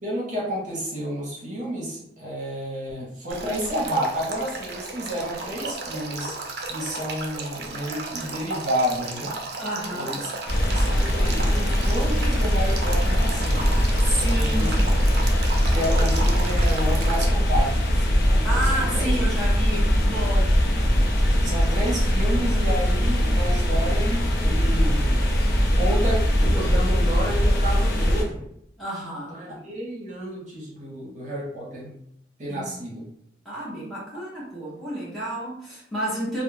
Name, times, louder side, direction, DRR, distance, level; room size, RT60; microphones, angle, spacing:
voice 1, 0.0-6.4 6.7-9.3 9.9-10.3 10.7-13.6 14.3-14.8 15.6-19.1 20.5-20.7 21.4-25.3 25.8-28.4 29.3-31.9 32.4-33.0, equal, 45° right, -5 dB, 0.9 m, -30 dB
Male speech man speaking / Stream / Trickle dribble, 3.3-17.2, right 3 dB, 60° right, 0.5 m, -34 dB
voice 2, 9.6-10.2 14.0-14.8 18.4-20.6 28.8-29.4 32.5-32.7 33.4-36.4, right 1 dB, ahead, -9 dB, 0.8 m, -30 dB
sound 1, 10.5-28.2, equal, 55° left, 0.5 m, -21 dB
2.5 x 2.0 x 3.2 m, 0.73 s
head